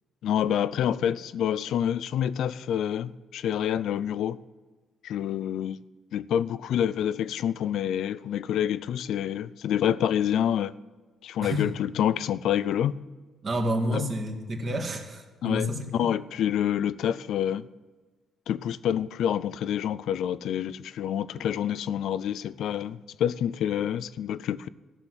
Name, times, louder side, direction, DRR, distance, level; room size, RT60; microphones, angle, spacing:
voice 1, 0.2-4.4 5.0-5.8 6.1-10.7 11.2-13.0 13.9-14.0 15.4-17.7 18.5-24.7, left 10 dB, 75° left, 0.4 m, -27 dB
voice 2, 13.4-16.1, equal, 45° right, 2.2 m, -29 dB
13.5 x 6.0 x 9.9 m
cardioid pair, 90°, 0 cm